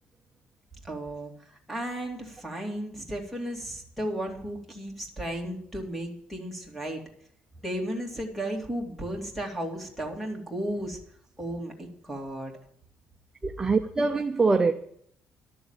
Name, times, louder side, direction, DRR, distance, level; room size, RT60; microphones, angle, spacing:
voice 1, 0.8-7.0 7.6-11.0 11.4-12.5, right 1 dB, 5° left, 2.7 m, -34 dB
voice 2, 13.4-14.7, right 4 dB, 15° right, 0.7 m, -23 dB
12.5 x 7.1 x 8.9 m
cardioid pair, 165°, 3 cm